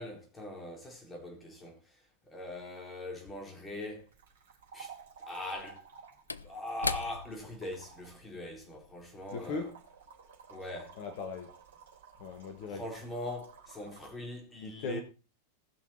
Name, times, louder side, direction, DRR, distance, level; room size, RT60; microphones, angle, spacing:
voice 1, 0.0-4.1 4.7-4.9 5.3-5.8 6.4-9.7 10.5-11.0 12.7-15.0, left 1 dB, 15° left, 4.2 m, -42 dB
sound 1, 3.8-14.1, right 6 dB, 60° right, 4.1 m, -54 dB
Slam / Wood, 5.4-10.1 10.4-10.6, left 4 dB, 80° left, 0.5 m, -41 dB
voice 2, 9.3-9.7 11.0-11.5 12.2-12.8 14.6-15.0, left 4 dB, 45° left, 1.7 m, -38 dB
19.0 x 6.3 x 4.4 m
figure-of-eight pair, 90°, 0 cm